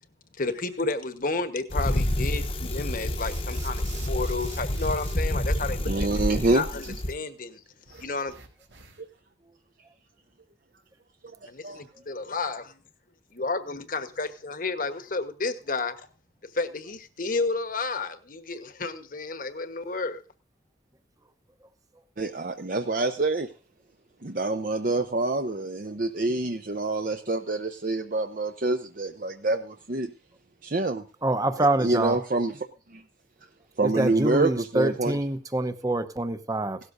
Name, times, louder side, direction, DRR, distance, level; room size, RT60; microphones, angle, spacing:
voice 1, 0.4-5.9 6.1-6.2 6.5-7.6 7.9-8.3 11.5-12.8 13.3-16.0 16.5-20.2, left 3 dB, 50° left, 1.2 m, -31 dB
Bicycle, 1.7-7.1, left 1 dB, 35° left, 1.0 m, -28 dB
sound 1, 3.2-5.2 7.8-9.2, right 6 dB, 85° right, 2.8 m, -48 dB
voice 2, 5.9-6.6 9.0-9.1 11.6-11.8 22.2-23.5 24.2-30.1 30.6-31.0 31.8-32.7 32.9-33.0 33.8-35.2, right 2 dB, 50° right, 0.8 m, -26 dB
voice 3, 31.2-32.2 33.8-36.8, right 2 dB, 20° right, 0.9 m, -26 dB
17.5 x 13.0 x 2.6 m
head